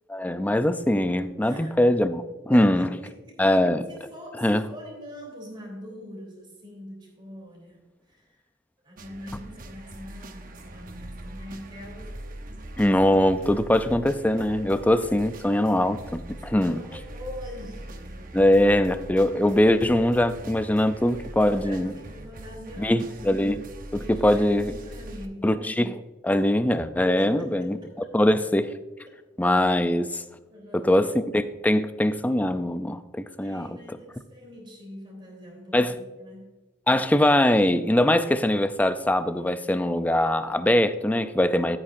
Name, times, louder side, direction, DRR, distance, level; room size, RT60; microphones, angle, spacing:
voice 1, 0.1-2.9 3.4-3.9 4.4-4.7 12.8-16.8 18.3-21.9 22.8-24.8 25.4-27.8 28.1-28.7 29.4-30.2 30.7-33.7 35.7-36.0 36.9-41.8, left 1 dB, 10° left, 11 dB, 0.4 m, -22 dB
voice 2, 1.4-1.7 2.5-3.6 3.9-8.4 8.8-12.7 16.5-18.5 21.6-23.4 24.0-25.5 27.0-27.9 30.5-30.9 33.4-36.5, equal, 25° right, -1 dB, 3.3 m, -43 dB
sound 1, 9.0-25.3, right 1 dB, 45° right, 0.8 m, -42 dB
14.0 x 8.7 x 2.6 m, 1.2 s
head